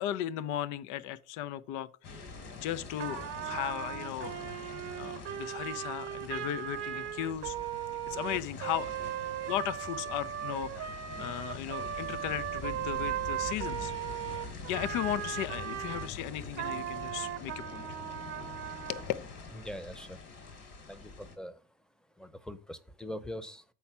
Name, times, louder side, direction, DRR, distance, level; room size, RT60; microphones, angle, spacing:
voice 1, 0.0-2.3 2.5-4.4 4.9-7.6 8.1-8.9 9.5-13.9 14.7-18.0 18.9-19.0, left 11 dB, 80° left, 0.5 m, -36 dB
sound 1, 2.0-21.4, left 3 dB, 60° left, 3.0 m, -45 dB
Trumpet, 3.0-16.1 16.5-19.1, right 11 dB, 55° right, 0.8 m, -38 dB
voice 2, 19.6-20.2 20.9-21.6 22.2-23.7, equal, ahead, 0.7 m, -42 dB
7.0 x 4.3 x 5.7 m
supercardioid pair, 80°, 30 cm